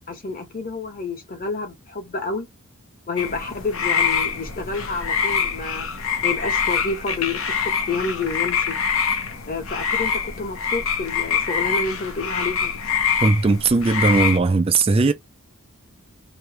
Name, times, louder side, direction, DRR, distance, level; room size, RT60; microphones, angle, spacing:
voice 1, 0.1-2.5 3.1-5.9 6.2-8.8 9.5-12.8, left 3 dB, 40° left, 1.2 m, -29 dB
sound 1, 3.2-14.4, left 6 dB, 65° left, 0.9 m, -25 dB
voice 2, 13.2-15.1, right 3 dB, 25° right, 0.3 m, -18 dB
3.1 x 2.9 x 4.6 m
head